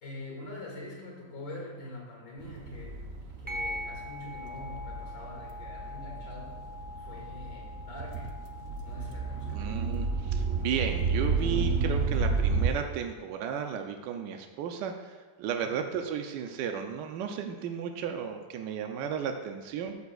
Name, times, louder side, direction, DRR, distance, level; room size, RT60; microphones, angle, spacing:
voice 1, 0.0-6.6 7.0-8.3 8.8-9.7 15.6-15.9, left 1 dB, 80° left, -2 dB, 2.7 m, -44 dB
sound 1, 2.4-12.7, right 4 dB, 60° right, 0.9 m, -32 dB
sound 2, 3.5-12.5, left 2 dB, 10° right, 0.6 m, -44 dB
voice 2, 9.5-20.0, right 8 dB, 85° right, 5 dB, 1.2 m, -34 dB
12.5 x 6.9 x 2.3 m, 1.3 s
omnidirectional pair, 1.9 m